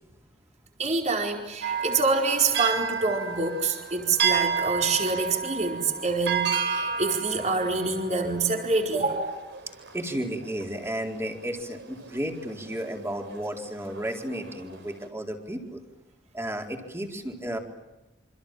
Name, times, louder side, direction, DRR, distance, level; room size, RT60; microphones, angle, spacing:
voice 1, 0.8-9.4, right 3 dB, 40° right, 3 dB, 4.6 m, -26 dB
sound 1, 1.6-11.1 11.6-12.2 12.7-13.4 13.8-15.0, right 6 dB, 75° right, 4.5 m, -31 dB
voice 2, 9.9-15.8 16.3-17.6, equal, 15° right, 3 dB, 4.2 m, -33 dB
28.0 x 26.5 x 7.7 m, 0.98 s
head